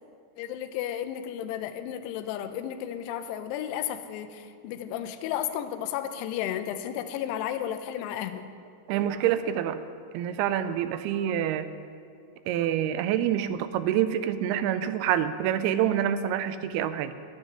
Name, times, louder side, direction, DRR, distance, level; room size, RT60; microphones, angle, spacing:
voice 1, 0.4-8.4, left 10 dB, 85° left, 8 dB, 2.7 m, -33 dB
voice 2, 8.9-9.8 10.1-11.7 12.5-17.1, right 10 dB, 80° right, 12 dB, 2.4 m, -27 dB
13.0 x 6.4 x 9.7 m, 2.5 s
omnidirectional pair, 4.8 m